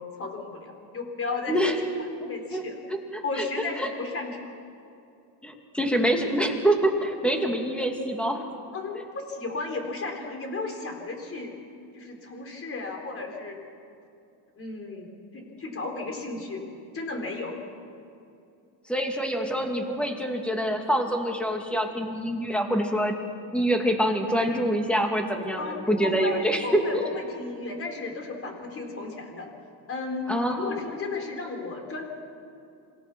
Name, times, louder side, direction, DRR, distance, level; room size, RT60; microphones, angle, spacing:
voice 1, 0.0-1.7 2.2-2.8 3.2-4.4 8.7-11.5 11.9-13.6 14.6-15.1 15.3-17.5 25.6-29.5 29.9-32.0, left 3 dB, 30° left, 3 dB, 4.1 m, -34 dB
voice 2, 2.2-2.6 2.9-3.4 3.8-3.9 5.4-8.4 8.9-9.0 18.9-23.2 23.5-27.1 30.3-30.8, right 1 dB, ahead, 3 dB, 2.4 m, -26 dB
26.5 x 19.0 x 6.2 m, 2.6 s
cardioid pair, 135°, 47 cm